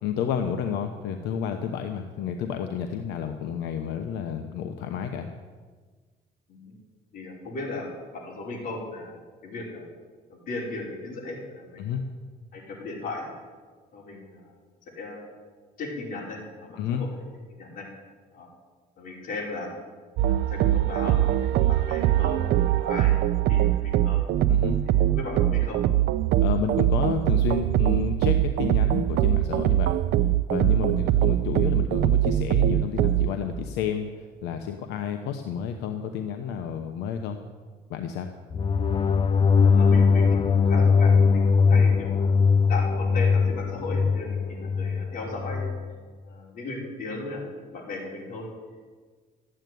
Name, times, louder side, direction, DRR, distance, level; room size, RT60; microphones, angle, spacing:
voice 1, 0.0-5.3 11.8-12.0 16.8-17.0 24.5-24.8 26.4-29.9 30.5-37.4 37.9-38.3, left 8 dB, 85° left, 6 dB, 1.0 m, -30 dB
voice 2, 7.1-9.9 10.3-12.0 12.5-13.3 13.9-14.5 14.9-15.3 15.8-17.2 17.5-17.9 18.3-18.5 19.0-19.7 20.3-24.2 24.8-25.8 38.8-39.0 39.6-42.3 42.7-45.7 46.2-48.5, left 2 dB, 55° left, -2 dB, 5.1 m, -37 dB
sound 1, 20.2-33.3, right 13 dB, 75° right, 0.6 m, -22 dB
sound 2, 38.5-45.8, left 5 dB, 30° left, 0.6 m, -21 dB
13.5 x 9.0 x 9.3 m, 1.5 s
cardioid pair, 110°, 17 cm